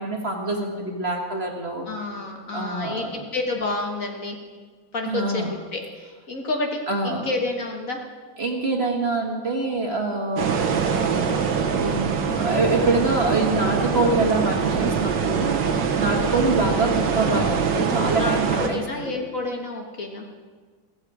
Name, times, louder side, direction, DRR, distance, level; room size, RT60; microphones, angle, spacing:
voice 1, 0.0-1.9 2.5-3.2 5.1-5.5 6.9-7.3 8.4-10.7 11.6-18.8, right 2 dB, 35° right, 1 dB, 1.6 m, -25 dB
voice 2, 1.9-4.4 4.9-5.4 5.7-8.0 16.0-16.3 18.2-20.3, left 3 dB, 50° left, 2 dB, 1.8 m, -30 dB
sound 1, 10.4-18.7, right 6 dB, 75° right, 1.8 m, -23 dB
15.5 x 14.0 x 4.9 m, 1.5 s
omnidirectional pair, 2.0 m